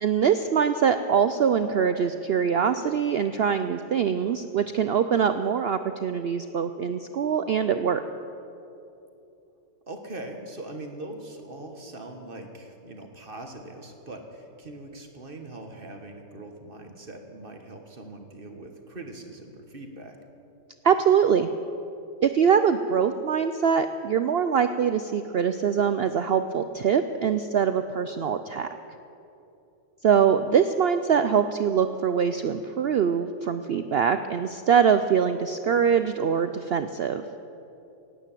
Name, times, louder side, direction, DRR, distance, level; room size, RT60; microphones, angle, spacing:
voice 1, 0.0-8.0 20.8-21.5 22.2-28.7 30.0-37.2, right 7 dB, 80° right, 10 dB, 0.5 m, -23 dB
voice 2, 9.9-20.2, right 2 dB, 35° right, 4 dB, 1.5 m, -41 dB
17.0 x 9.1 x 9.1 m, 2.9 s
omnidirectional pair, 1.6 m